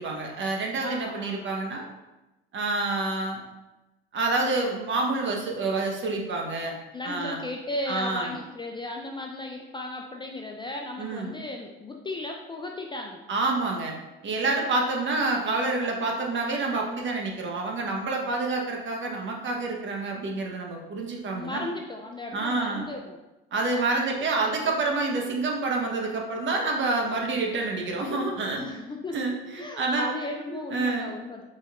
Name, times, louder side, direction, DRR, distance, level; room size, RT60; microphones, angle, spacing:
voice 1, 0.0-1.8 2.5-3.4 4.1-6.8 7.0-7.4 7.9-8.3 11.0-11.4 13.3-14.0 14.2-21.6 22.3-22.9 23.5-28.7 29.1-31.1, right 3 dB, 40° right, 1 dB, 1.0 m, -28 dB
voice 2, 0.8-1.5 6.9-13.2 21.3-23.2 28.5-29.2 29.6-31.4, left 2 dB, 15° left, 1 dB, 0.4 m, -35 dB
4.0 x 3.9 x 2.4 m, 1.0 s
hypercardioid pair, 70°, 29 cm